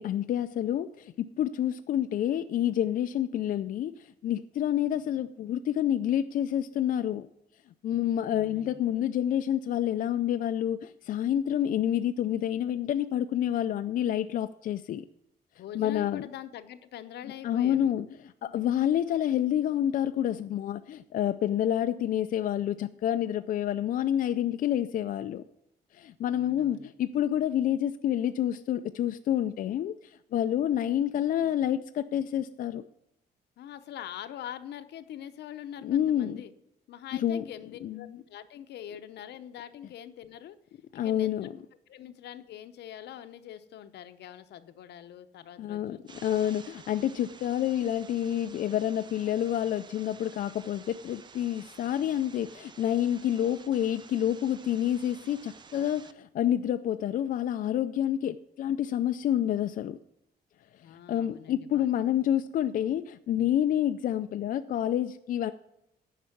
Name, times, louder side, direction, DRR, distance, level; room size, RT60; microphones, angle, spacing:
voice 1, 0.0-7.3 7.8-15.0 15.7-16.2 17.4-18.1 18.4-25.4 25.9-32.8 35.8-36.4 37.1-37.4 37.8-38.0 40.9-41.5 45.6-60.0 61.1-65.5, left 11 dB, 55° left, 9 dB, 0.4 m, -28 dB
voice 2, 8.2-8.8 15.5-17.9 26.3-26.9 33.6-36.5 36.9-40.6 40.9-41.4 41.9-46.0 46.3-46.6 60.8-61.9, left 10 dB, 75° left, 11 dB, 0.8 m, -44 dB
sound 1, 46.1-56.1, right 5 dB, 25° right, 0.5 m, -52 dB
10.0 x 5.5 x 7.1 m, 0.82 s
cardioid pair, 165°, 17 cm